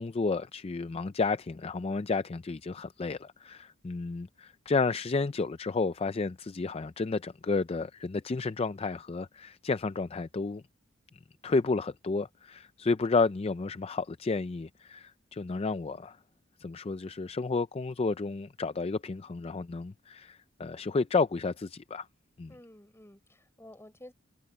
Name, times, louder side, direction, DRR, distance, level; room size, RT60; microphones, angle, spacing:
voice 1, 0.0-10.6 11.4-16.2 16.6-22.1 22.4-22.5, left 4 dB, 30° left, 0.4 m, -31 dB
voice 2, 22.5-24.1, left 1 dB, 15° left, 5.6 m, -51 dB
head